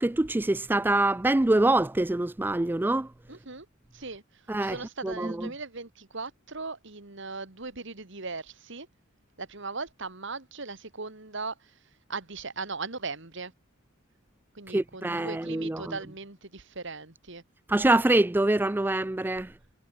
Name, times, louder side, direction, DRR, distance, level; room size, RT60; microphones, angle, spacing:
voice 1, 0.0-3.1 4.5-4.8 5.0-5.5 14.7-15.9 17.7-19.5, right 2 dB, 10° right, 0.4 m, -25 dB
voice 2, 3.3-3.7 3.9-8.9 9.4-11.8 12.1-13.5 14.5-17.4, right 4 dB, 60° right, 2.7 m, -38 dB
head